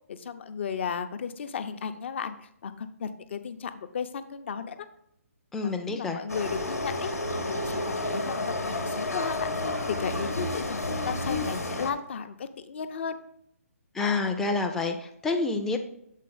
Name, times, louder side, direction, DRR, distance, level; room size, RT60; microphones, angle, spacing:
voice 1, 0.1-4.9 5.6-13.2, left 7 dB, 50° left, 10 dB, 0.6 m, -35 dB
voice 2, 5.5-6.2 13.9-15.8, left 3 dB, 5° left, 3 dB, 0.3 m, -28 dB
sound 1, 6.3-11.9, left 2 dB, 90° left, 1.1 m, -30 dB
7.3 x 4.3 x 3.9 m, 0.74 s
figure-of-eight pair, 145°, 8 cm